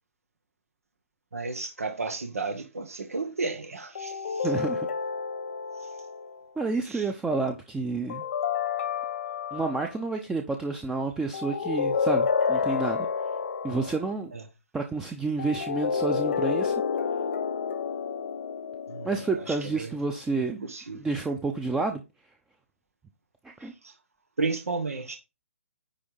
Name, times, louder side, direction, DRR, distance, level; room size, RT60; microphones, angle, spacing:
voice 1, 1.3-4.5 5.8-6.0 6.8-7.1 14.3-14.4 18.9-19.1 19.5-19.9 20.6-21.0 23.6-23.9 24.4-25.2, right 3 dB, 85° right, 1.3 m, -33 dB
sound 1, 3.9-6.4 8.1-9.9 11.3-14.0 15.4-19.9, left 6 dB, 60° left, 1.1 m, -29 dB
voice 2, 4.4-4.9 6.6-8.2 9.5-13.1 13.6-14.3 14.7-16.8 19.0-20.7 20.9-22.0 23.4-23.7, right 3 dB, 5° right, 0.7 m, -30 dB
10.0 x 3.5 x 5.6 m
hypercardioid pair, 140°, 8 cm